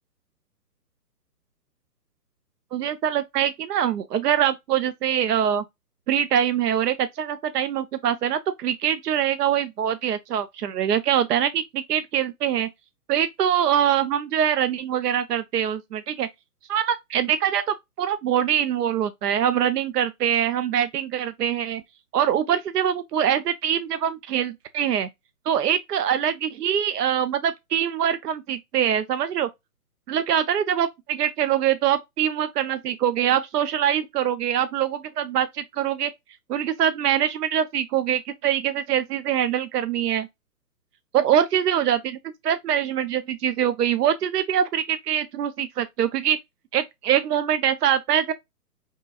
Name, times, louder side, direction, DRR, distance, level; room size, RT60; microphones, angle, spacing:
voice 1, 2.7-5.6 6.1-12.7 13.1-16.3 16.7-21.8 22.1-25.1 25.5-29.5 30.1-36.1 36.5-40.3 41.1-42.0 42.4-46.4 46.7-48.3, right 9 dB, 80° right, 0.6 m, -23 dB
4.5 x 3.1 x 2.4 m
hypercardioid pair, 145°, 47 cm